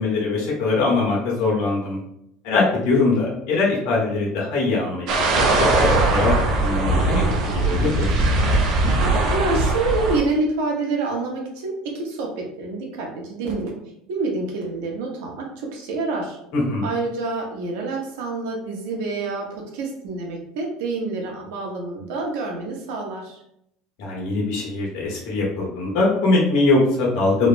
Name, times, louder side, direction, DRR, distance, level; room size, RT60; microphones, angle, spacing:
voice 1, 0.0-2.0 2.4-8.1 16.5-16.9 24.0-27.5, left 3 dB, 75° left, -4 dB, 1.3 m, -22 dB
sound 1, 5.1-10.2, right 2 dB, 50° right, 0.6 m, -20 dB
voice 2, 9.3-13.7 14.1-16.4 16.8-19.5 19.7-23.4, right 3 dB, 85° right, 0 dB, 0.9 m, -27 dB
3.3 x 2.0 x 2.5 m, 0.75 s
cardioid pair, 165°, 0 cm